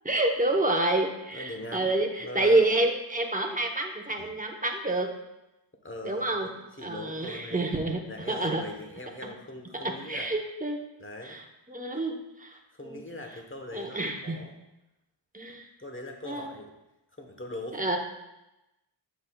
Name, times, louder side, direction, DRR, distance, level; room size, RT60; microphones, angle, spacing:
voice 1, 0.0-5.1 6.0-6.5 6.8-8.0 8.3-8.6 10.1-10.8 11.2-11.4 11.7-12.6 12.8-13.0 13.7-14.4 15.3-15.7 16.3-16.5 17.7-18.0, right 2 dB, 15° right, 2 dB, 0.9 m, -28 dB
voice 2, 1.3-2.7 4.1-4.3 5.8-7.6 8.1-10.3 11.0-11.4 12.7-14.6 15.8-16.7 17.2-17.9, left 1 dB, 25° left, 2 dB, 1.1 m, -41 dB
8.0 x 6.7 x 2.3 m, 0.95 s
wide cardioid pair, 45°, 47 cm